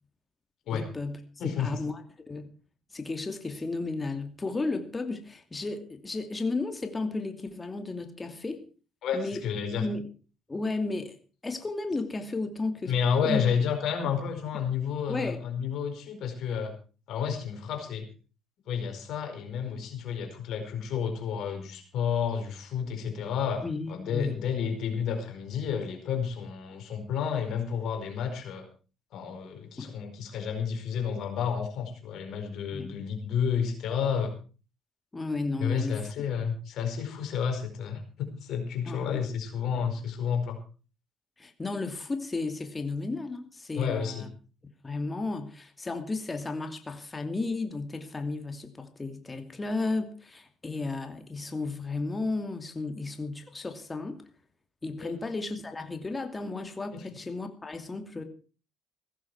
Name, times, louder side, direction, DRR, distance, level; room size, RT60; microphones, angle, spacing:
voice 1, 0.7-2.0 2.3-2.5 2.9-8.6 9.1-9.4 9.8-10.0 10.5-11.2 11.4-13.0 13.2-13.4 14.0-14.1 15.1-15.4 23.6-24.4 29.8-29.9 32.7-33.0 35.1-36.1 38.9-39.2 39.7-39.9 41.4-44.3 44.8-54.2 54.8-58.2, left 3 dB, 25° left, 6 dB, 2.6 m, -33 dB
voice 2, 1.4-1.8 9.0-9.9 12.9-16.7 17.1-18.1 18.7-28.6 29.1-34.3 35.6-40.6 43.7-44.2 55.0-55.1 56.9-57.0, left 7 dB, 65° left, 5 dB, 4.8 m, -31 dB
16.5 x 14.0 x 4.7 m, 0.37 s
hypercardioid pair, 60°, 0 cm